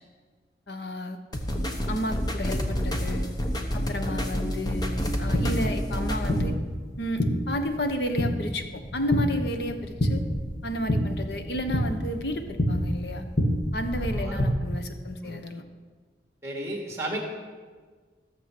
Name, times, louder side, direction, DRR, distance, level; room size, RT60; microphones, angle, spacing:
voice 1, 0.7-1.2 1.9-3.3 3.7-6.6 7.0-10.2 10.6-13.3 13.7-15.6, left 1 dB, 70° left, 7 dB, 1.1 m, -32 dB
sound 1, 1.3-6.4, equal, 20° left, 1.0 m, -29 dB
sound 2, 4.7-14.5, equal, 45° left, 2.0 m, -29 dB
voice 2, 14.0-14.4 15.2-15.4 16.4-17.2, right 1 dB, 15° right, 0 dB, 2.5 m, -34 dB
15.0 x 7.3 x 6.0 m, 1.5 s
head